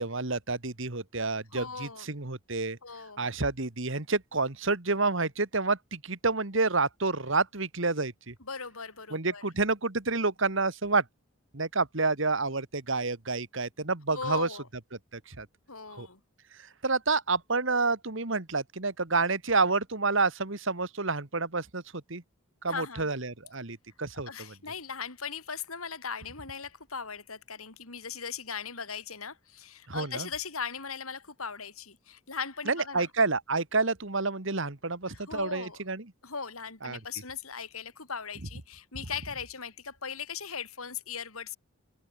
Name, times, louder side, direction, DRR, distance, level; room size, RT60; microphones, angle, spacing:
voice 1, 0.0-2.8 3.2-8.3 9.1-11.0 11.5-14.5 15.1-15.5 16.0-16.1 16.8-21.8 22.1-22.2 22.6-24.3 29.9-30.3 32.7-36.1 36.8-37.0, right 3 dB, 60° right, 1.9 m, -29 dB
voice 2, 1.5-2.1 2.8-3.2 8.4-9.4 14.1-14.7 15.7-16.2 22.7-23.1 24.3-33.1 35.1-35.8 36.2-41.6, left 6 dB, 85° left, 4.5 m, -39 dB
head